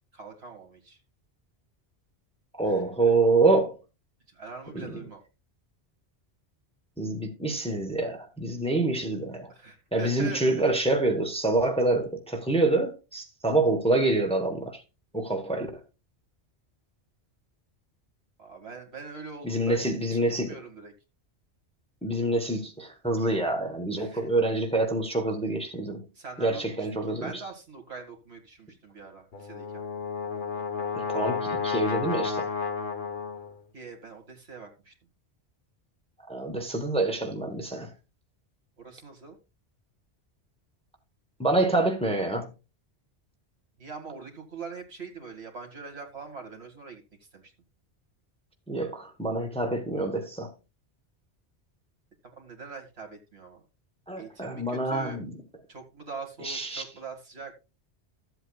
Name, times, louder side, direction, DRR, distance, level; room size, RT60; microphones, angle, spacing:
voice 1, 0.1-1.0 2.6-3.2 4.3-5.2 9.5-10.4 18.4-19.8 20.2-20.9 24.0-24.3 26.1-29.9 33.7-34.9 38.8-39.4 43.8-47.0 47.3-47.5 52.4-53.6 54.2-55.2 55.7-57.5, right 4 dB, 70° right, 2.2 m, -43 dB
voice 2, 2.6-3.8 4.7-4.9 7.0-9.5 9.9-14.8 15.1-15.7 19.4-20.5 22.0-26.0 26.4-27.4 30.9-32.5 36.3-37.9 41.4-42.5 48.7-50.5 54.1-55.3 56.4-56.8, right 2 dB, 5° left, 1.1 m, -26 dB
Brass instrument, 29.3-33.6, left 5 dB, 50° left, 1.1 m, -31 dB
13.5 x 8.0 x 2.3 m
omnidirectional pair, 1.1 m